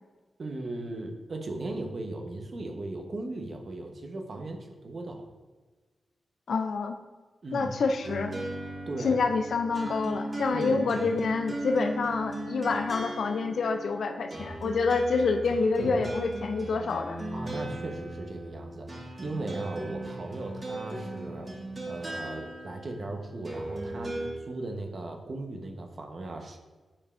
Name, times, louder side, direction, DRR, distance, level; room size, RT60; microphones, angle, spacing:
voice 1, 0.4-5.3 7.4-7.7 8.9-9.2 10.5-11.1 15.8-16.0 17.3-18.9 19.2-21.5 21.9-26.6, right 2 dB, 55° right, 3 dB, 0.8 m, -37 dB
voice 2, 6.5-7.0 7.5-8.4 9.0-17.2, left 4 dB, 70° left, 7 dB, 0.4 m, -27 dB
sound 1, 8.0-24.3, right 1 dB, 35° right, 1.5 m, -37 dB
8.5 x 4.8 x 2.4 m, 1.3 s
cardioid pair, 65°, 0 cm